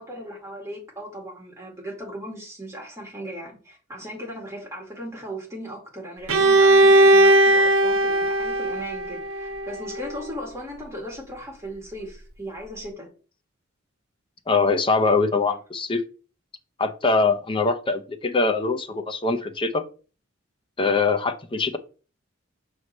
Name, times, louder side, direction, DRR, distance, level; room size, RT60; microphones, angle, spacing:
voice 1, 0.0-13.1 15.5-15.6, equal, 15° right, 2.0 m, -37 dB
Bowed string instrument, 6.3-10.1, right 1 dB, 80° right, 0.9 m, -18 dB
voice 2, 14.5-16.0 16.8-19.8 20.8-21.8, left 4 dB, 25° left, 0.6 m, -23 dB
6.2 x 3.2 x 5.3 m
head